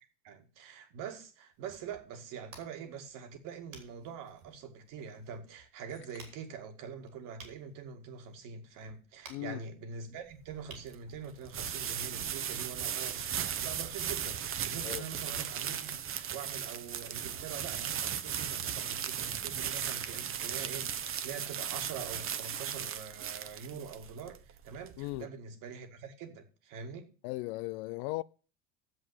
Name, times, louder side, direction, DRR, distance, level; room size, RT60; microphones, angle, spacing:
voice 1, 0.2-27.1, right 6 dB, 55° right, 2.1 m, -44 dB
sound 1, 1.5-14.8, right 4 dB, 80° right, 3.5 m, -58 dB
sound 2, 5.9-6.7, left 6 dB, 30° left, 2.1 m, -59 dB
voice 2, 9.3-9.6 14.8-15.1 25.0-25.3 27.2-28.2, left 20 dB, 55° left, 0.5 m, -37 dB
sound 3, 10.3-25.2, right 8 dB, 35° right, 1.0 m, -37 dB
7.8 x 7.6 x 8.4 m
hypercardioid pair, 70°, 38 cm